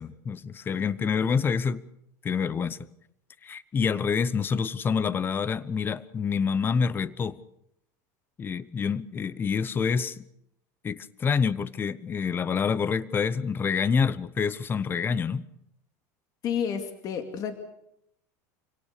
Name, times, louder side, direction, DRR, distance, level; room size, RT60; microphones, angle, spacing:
voice 1, 0.0-1.8 2.2-2.8 3.4-7.4 8.4-10.2 10.8-15.4, left 6 dB, 25° left, 0.9 m, -27 dB
voice 2, 16.4-17.5, left 8 dB, 40° left, 2.5 m, -30 dB
27.5 x 18.0 x 6.7 m
supercardioid pair, 135°, 9 cm